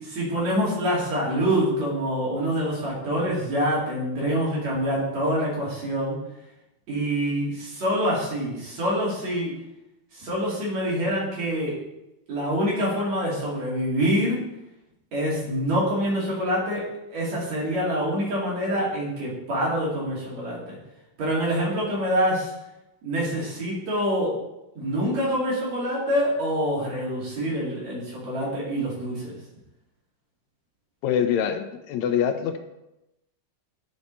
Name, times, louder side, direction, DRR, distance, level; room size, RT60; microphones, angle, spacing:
voice 1, 0.0-6.2 6.9-9.6 10.1-11.8 12.3-14.4 15.1-20.8 21.2-22.5 23.0-24.4 24.8-29.3, equal, 65° right, -6 dB, 3.9 m, -26 dB
voice 2, 31.0-32.6, left 8 dB, 80° left, 7 dB, 1.9 m, -24 dB
11.5 x 4.7 x 4.1 m, 0.92 s
omnidirectional pair, 3.3 m